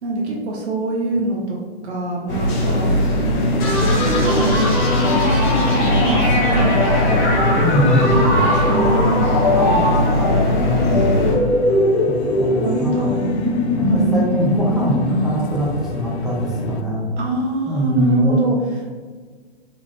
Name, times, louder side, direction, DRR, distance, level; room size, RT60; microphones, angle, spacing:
voice 1, 0.0-1.6 1.8-2.9 3.7-10.5 12.6-13.3 13.8-14.1 17.2-18.5, right 2 dB, 75° right, -3 dB, 1.0 m, -25 dB
sound 1, 2.3-11.4, left 1 dB, 50° left, 1.3 m, -20 dB
ambience horrible nightmare, 3.2-16.8, left 6 dB, 75° left, 0.5 m, -31 dB
sound 2, 3.6-17.2, left 1 dB, 35° left, 1.5 m, -21 dB
voice 2, 7.6-8.4 10.6-11.1 12.0-13.1 13.7-13.9 14.1-17.1 17.7-18.4, equal, ahead, -6 dB, 0.5 m, -22 dB
3.6 x 3.3 x 2.5 m, 1.5 s
hypercardioid pair, 140°, 33 cm